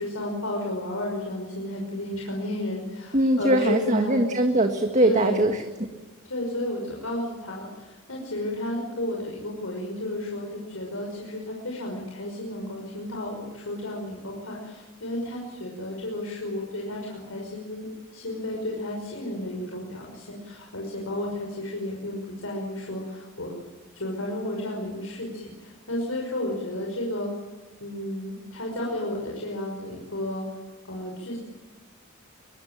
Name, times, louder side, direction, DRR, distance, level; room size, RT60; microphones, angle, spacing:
voice 1, 0.0-4.2 5.0-5.5 6.3-17.9 18.1-23.5 23.9-27.3 27.8-30.4 30.8-31.4, left 1 dB, 85° left, -1 dB, 5.8 m, -32 dB
voice 2, 3.1-5.9, right 1 dB, 35° right, 6 dB, 1.7 m, -22 dB
23.5 x 23.5 x 9.0 m, 1.2 s
head